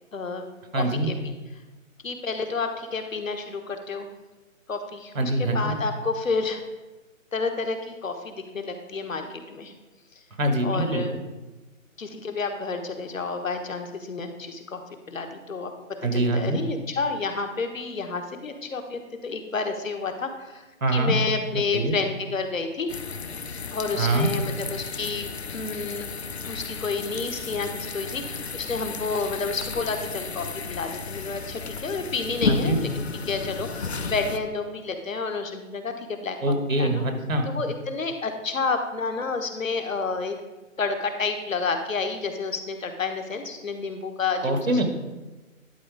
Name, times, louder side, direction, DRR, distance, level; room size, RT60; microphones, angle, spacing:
voice 1, 0.1-1.3 2.0-4.1 4.7-6.6 7.3-9.7 10.6-11.2 12.0-14.8 15.1-15.7 16.1-22.9 23.7-26.1 26.4-36.4 36.7-37.0 37.4-40.4 40.8-44.8, left 4 dB, 70° left, 6 dB, 1.2 m, -30 dB
voice 2, 0.7-1.1 5.1-5.7 10.4-11.0 16.0-16.6 20.8-21.2 21.7-22.0 24.0-24.3 32.5-32.8 36.4-37.5 44.4-44.9, right 1 dB, 75° right, 5 dB, 1.6 m, -24 dB
sound 1, 22.9-34.4, left 5 dB, 50° left, 0.5 m, -33 dB
11.0 x 4.0 x 4.7 m, 1.2 s
hypercardioid pair, 175°, 41 cm